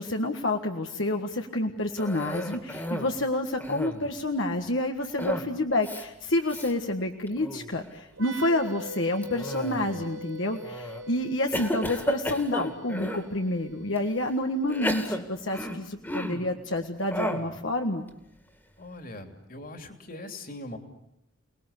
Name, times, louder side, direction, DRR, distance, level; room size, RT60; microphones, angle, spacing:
voice 1, 0.0-18.0, left 1 dB, 75° left, 4 dB, 1.7 m, -29 dB
Cough, 2.0-3.2 3.5-4.1 5.2-5.5 5.8-6.0 6.5-6.7 7.3-7.7 9.2-10.0 10.6-11.0 11.5-13.3 14.0-14.1 14.7-16.5 17.1-17.5, equal, 10° left, 2.3 m, -33 dB
sound 1, 8.1-15.6, equal, 75° right, 1.3 m, -43 dB
voice 2, 18.8-20.8, left 1 dB, 45° left, 6 dB, 3.0 m, -41 dB
29.0 x 20.0 x 8.3 m, 0.82 s
head